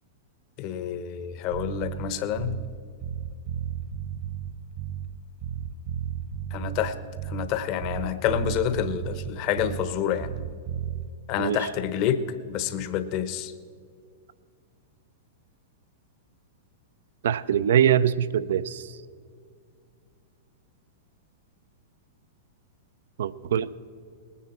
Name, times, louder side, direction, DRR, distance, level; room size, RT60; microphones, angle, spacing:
voice 1, 0.6-2.6 6.5-7.0 7.2-10.3 11.3-13.5, left 9 dB, 45° left, 11 dB, 1.0 m, -28 dB
Bass guitar, 1.5-2.8 3.0-5.2 5.4-7.6 7.8-10.0 10.2-11.1, right 9 dB, 50° right, 1.1 m, -34 dB
voice 2, 17.2-18.8 23.2-23.7, right 9 dB, 70° right, 16 dB, 0.5 m, -23 dB
20.0 x 9.6 x 4.3 m, 2.2 s
hypercardioid pair, 105°, 0 cm